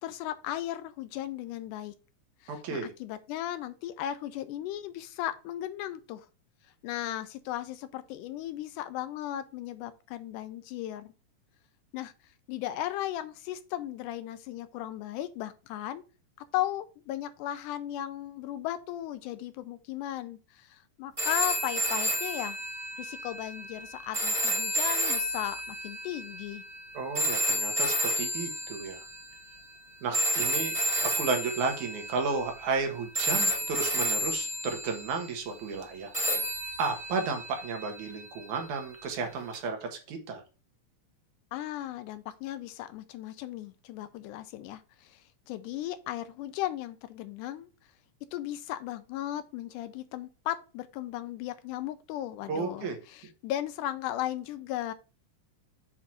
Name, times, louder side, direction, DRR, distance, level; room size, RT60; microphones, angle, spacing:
voice 1, 0.0-1.9 2.4-6.3 6.8-11.1 11.9-12.1 12.5-16.0 16.5-22.6 23.0-26.6 41.5-47.7 48.3-54.9, left 13 dB, 85° left, 2.1 m, -36 dB
voice 2, 2.5-2.9 26.9-29.1 30.0-36.1 36.8-40.4 52.5-53.0, right 4 dB, 70° right, 2.4 m, -33 dB
sound 1, 21.2-29.4 30.1-32.8 33.1-35.3 36.1-38.4 39.5-39.7, equal, 35° right, 0.5 m, -31 dB
7.4 x 2.7 x 5.8 m
omnidirectional pair, 3.7 m